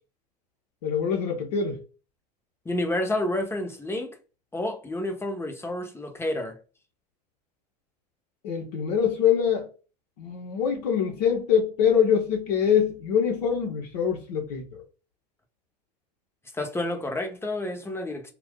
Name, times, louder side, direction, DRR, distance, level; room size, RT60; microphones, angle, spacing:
voice 1, 0.8-1.8 8.4-9.7 10.2-14.8, left 7 dB, 70° left, 0.9 m, -24 dB
voice 2, 2.6-4.2 4.5-6.6 16.5-18.3, left 1 dB, 10° left, 0.9 m, -29 dB
2.7 x 2.4 x 3.6 m
hypercardioid pair, 85°, 21 cm